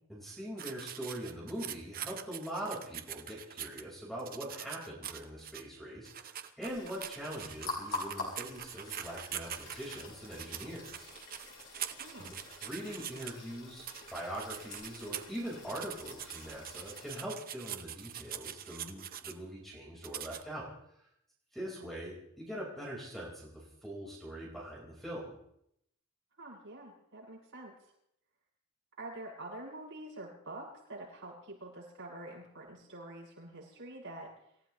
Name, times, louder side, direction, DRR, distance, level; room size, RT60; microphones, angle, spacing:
voice 1, 0.1-11.1 12.2-12.4 12.6-20.7 21.5-25.4, right 1 dB, ahead, -4 dB, 4.3 m, -42 dB
sound 1, 0.6-3.8 4.2-5.6 6.0-13.3 13.8-15.4 15.7-19.3 20.0-20.4, right 10 dB, 40° right, 0.8 m, -43 dB
sound 2, 6.6-17.2, left 3 dB, 70° left, 5.1 m, -46 dB
voice 2, 12.0-12.3 21.8-21.9 26.4-27.7 29.0-34.3, right 1 dB, 60° right, -5 dB, 7.5 m, -46 dB
26.5 x 15.5 x 3.1 m, 0.75 s
head